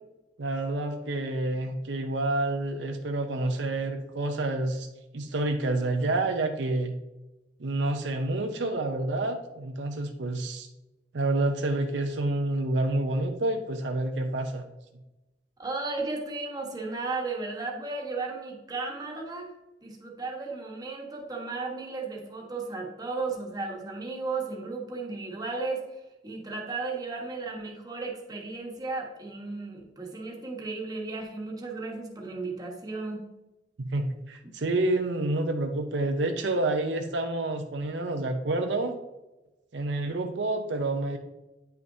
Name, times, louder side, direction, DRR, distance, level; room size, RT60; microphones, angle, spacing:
voice 1, 0.4-4.9 5.1-6.9 7.6-10.7 11.1-14.6 33.8-39.0 39.7-41.2, right 2 dB, 75° right, 5 dB, 0.6 m, -28 dB
voice 2, 15.6-19.5 19.8-33.2, right 3 dB, 20° right, 0 dB, 1.2 m, -35 dB
9.1 x 5.8 x 2.7 m, 1.0 s
head